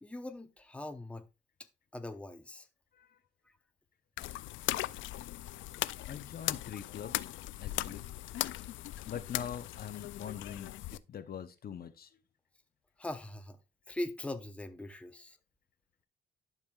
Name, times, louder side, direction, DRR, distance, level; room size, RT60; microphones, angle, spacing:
voice 1, 0.0-1.3 1.9-2.7 13.0-13.6 13.9-15.4, left 1 dB, 5° left, 0.8 m, -41 dB
sound 1, 4.2-11.0, left 15 dB, 75° left, 0.4 m, -38 dB
voice 2, 6.1-7.3 7.6-8.0 9.0-12.1, left 8 dB, 50° left, 0.8 m, -43 dB
11.5 x 5.4 x 2.3 m
cardioid pair, 90°, 20 cm